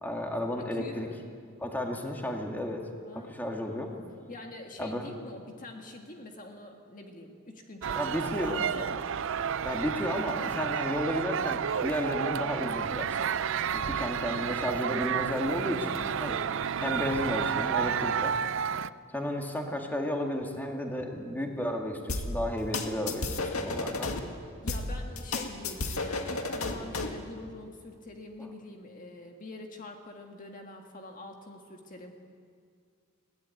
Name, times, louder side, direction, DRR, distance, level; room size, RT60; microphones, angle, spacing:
voice 1, 0.0-1.1 1.6-2.8 3.1-3.9 4.8-5.1 7.9-8.7 9.6-13.2 13.7-16.4 16.8-18.3 19.1-24.1, left 1 dB, 10° left, 1 dB, 2.2 m, -33 dB
voice 2, 0.5-1.2 3.1-9.1 14.2-14.7 24.6-32.1, left 2 dB, 40° left, 2 dB, 1.7 m, -45 dB
sound 1, 7.8-18.9, right 7 dB, 60° right, 0.5 m, -31 dB
sound 2, 22.1-24.2 24.7-27.2, left 3 dB, 80° left, 1.9 m, -32 dB
21.5 x 17.5 x 9.4 m, 2.2 s
head